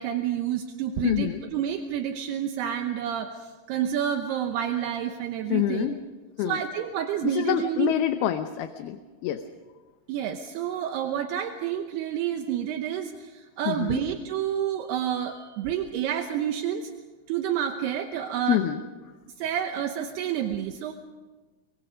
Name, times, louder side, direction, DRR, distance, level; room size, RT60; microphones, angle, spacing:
voice 1, 0.0-5.9 6.4-7.9 10.1-16.9 17.3-18.6 19.4-20.9, right 10 dB, 75° right, 5 dB, 2.9 m, -29 dB
voice 2, 1.0-1.4 5.5-6.0 6.4-6.6 7.2-9.4 13.7-14.0 18.5-18.8, left 12 dB, 75° left, 7 dB, 2.6 m, -26 dB
25.0 x 23.0 x 5.0 m, 1.3 s
omnidirectional pair, 4.9 m